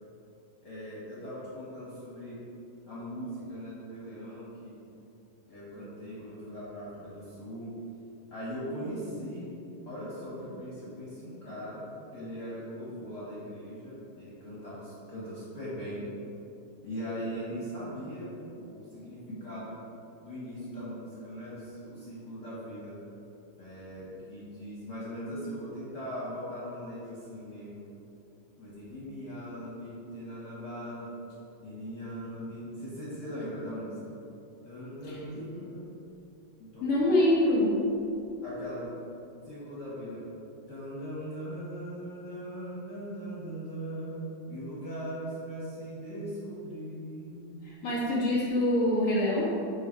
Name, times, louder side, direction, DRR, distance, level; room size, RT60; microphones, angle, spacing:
voice 1, 0.6-2.4 2.9-4.8 5.5-7.7 8.3-9.5 9.9-16.1 16.8-19.8 20.2-23.0 23.6-27.9 28.6-31.1 31.6-34.0 34.6-35.9 36.6-36.9 38.4-38.9 39.4-40.2 40.7-47.5, equal, 45° left, -8 dB, 1.6 m, -40 dB
voice 2, 36.8-37.9 47.6-49.4, left 1 dB, 65° left, -8 dB, 0.8 m, -25 dB
6.8 x 5.0 x 4.6 m, 2.7 s
omnidirectional pair, 3.7 m